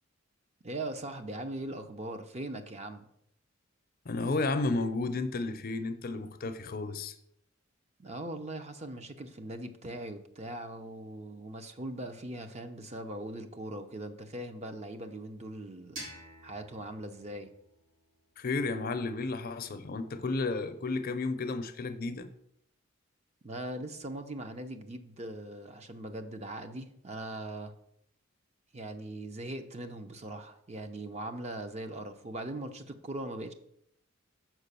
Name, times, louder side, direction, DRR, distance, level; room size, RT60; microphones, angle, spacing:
voice 1, 0.6-3.1 8.0-16.0 16.4-17.5 23.4-27.7 28.7-33.5, right 1 dB, 35° right, 0.7 m, -40 dB
voice 2, 4.0-7.1 18.4-22.3, left 3 dB, 50° left, 0.6 m, -32 dB
sound 1, 16.0-18.8, right 1 dB, 85° right, 2.8 m, -49 dB
6.1 x 4.9 x 6.7 m
head